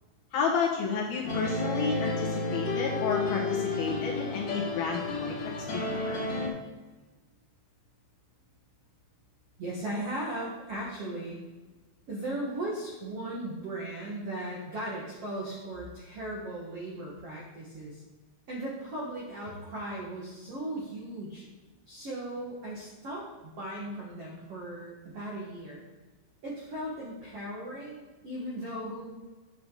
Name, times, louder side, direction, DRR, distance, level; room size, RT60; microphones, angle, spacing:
voice 1, 0.3-5.3 5.7-6.2, left 5 dB, 65° left, -4 dB, 2.7 m, -31 dB
sound 1, 1.2-6.5, left 3 dB, 45° left, 1.8 m, -31 dB
voice 2, 9.6-11.4 12.1-18.0 18.5-21.4 21.9-25.8 26.4-29.2, right 1 dB, 85° right, -4 dB, 1.3 m, -37 dB
9.0 x 8.7 x 4.0 m, 1.2 s
omnidirectional pair, 5.8 m